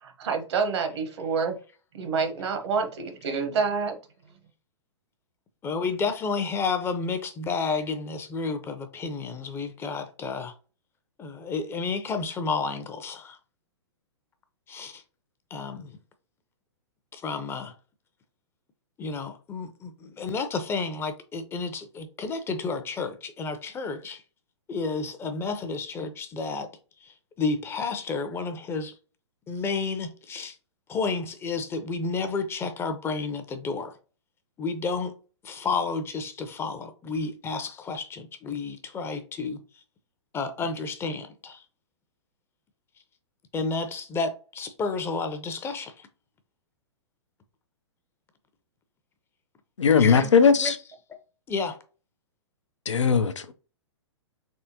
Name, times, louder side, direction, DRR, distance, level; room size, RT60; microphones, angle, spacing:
voice 1, 0.0-1.6 1.9-3.9, right 5 dB, 65° right, 1.0 m, -27 dB
voice 2, 5.6-10.5 11.2-13.4 14.7-15.0 15.5-15.9 17.1-17.7 19.0-24.2 24.7-26.7 27.0-27.1 27.4-28.9 29.5-30.6 30.9-34.0 34.6-35.1 35.4-39.6 40.3-41.6 43.5-45.9 50.0-50.3 50.6-50.7 51.5-51.8, left 4 dB, 15° left, 0.5 m, -31 dB
voice 3, 49.8-50.8 52.9-53.5, left 6 dB, 85° left, 0.5 m, -19 dB
3.6 x 3.3 x 2.8 m
hypercardioid pair, 120°, 15 cm